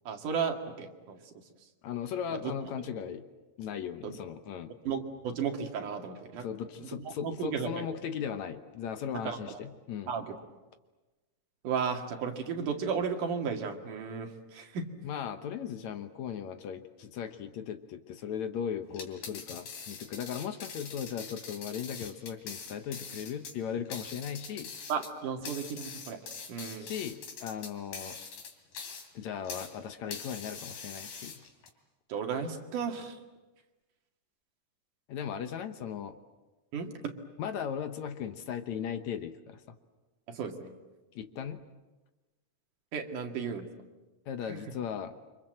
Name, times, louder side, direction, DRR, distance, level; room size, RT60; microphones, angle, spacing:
voice 1, 0.1-1.2 2.3-2.5 4.0-4.2 4.9-6.5 7.1-7.8 9.2-9.4 10.1-10.4 11.6-14.9 24.9-26.2 26.5-26.9 32.1-33.2 36.7-37.2 40.3-40.7 42.9-43.7 44.5-44.6, right 6 dB, 75° right, 3 dB, 3.6 m, -34 dB
voice 2, 1.8-3.3 3.6-4.7 6.4-10.1 15.0-24.7 26.8-28.2 29.1-31.4 35.1-36.2 37.4-39.8 41.1-41.6 44.3-45.2, left 8 dB, 65° left, 9 dB, 2.2 m, -37 dB
sound 1, 18.9-29.8 30.1-31.7, left 5 dB, 90° left, 4.4 m, -43 dB
29.0 x 25.5 x 7.7 m, 1.2 s
omnidirectional pair, 3.8 m